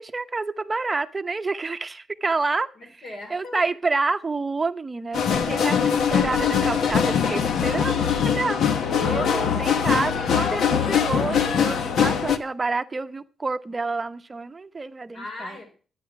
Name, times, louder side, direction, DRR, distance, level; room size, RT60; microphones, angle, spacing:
voice 1, 0.0-2.7 3.3-5.8 6.1-15.6, right 3 dB, 25° right, 10 dB, 0.8 m, -28 dB
voice 2, 2.8-3.6 15.1-15.7, left 2 dB, 55° left, 5 dB, 3.7 m, -40 dB
sound 1, 5.1-12.4, left 7 dB, 80° left, 1.3 m, -22 dB
12.0 x 9.5 x 5.8 m, 0.39 s
wide cardioid pair, 145°, 0 cm